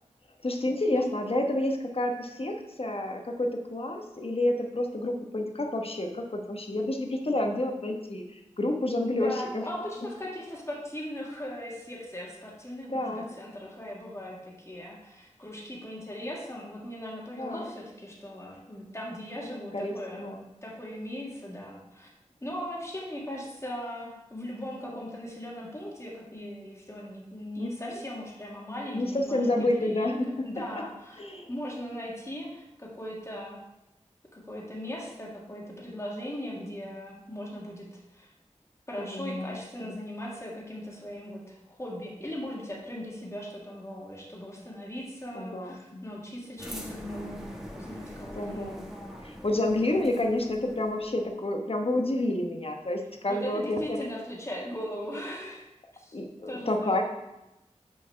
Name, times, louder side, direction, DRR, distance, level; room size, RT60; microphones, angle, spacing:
voice 1, 0.4-9.6 12.9-13.3 17.4-17.7 19.7-20.4 24.8-25.0 27.6-28.0 28.9-30.5 31.2-31.5 39.0-40.0 45.3-46.0 48.3-54.1 56.1-57.0, left 1 dB, 50° left, 2 dB, 1.2 m, -29 dB
voice 2, 9.0-20.3 20.6-22.1 22.4-33.6 34.3-37.9 38.1-38.3 38.9-49.0 53.3-56.2 56.5-57.0, equal, 25° left, -4 dB, 2.0 m, -39 dB
sound 1, 46.6-51.4, equal, 5° right, 1.5 m, -43 dB
6.6 x 4.6 x 5.8 m, 0.94 s
wide cardioid pair, 50°, 12 cm